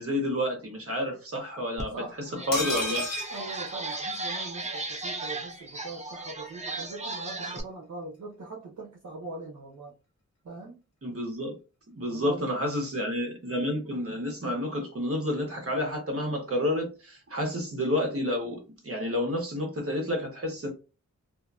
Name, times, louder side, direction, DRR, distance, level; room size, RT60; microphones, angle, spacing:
voice 1, 0.0-2.0 2.3-3.1 11.0-11.5 11.9-20.7, left 1 dB, 50° right, 1.1 m, -30 dB
sound 1, 1.8-1.9 2.3-7.6, right 2 dB, 25° right, 0.6 m, -36 dB
sound 2, 2.5-4.5 4.8-4.9 5.1-5.3, left 1 dB, 60° left, 1.2 m, -33 dB
voice 2, 3.3-9.9 10.4-10.8 12.1-12.7, right 3 dB, 70° right, 0.8 m, -41 dB
2.7 x 2.6 x 2.4 m
wide cardioid pair, 70°, 30 cm